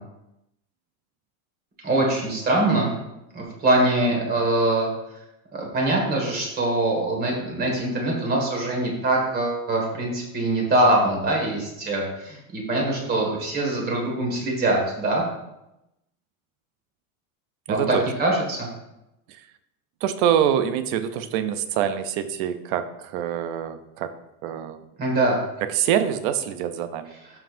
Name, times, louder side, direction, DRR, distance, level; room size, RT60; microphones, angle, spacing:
voice 1, 1.8-2.9 3.3-4.9 5.5-15.3 17.7-18.7 25.0-25.4, right 1 dB, 20° right, -1 dB, 1.8 m, -23 dB
voice 2, 17.7-18.0 19.3-19.4 20.0-24.1 24.4-24.8 25.6-27.2, right 9 dB, 40° right, 11 dB, 0.5 m, -25 dB
13.0 x 5.5 x 2.6 m, 0.88 s
supercardioid pair, 170°, 43 cm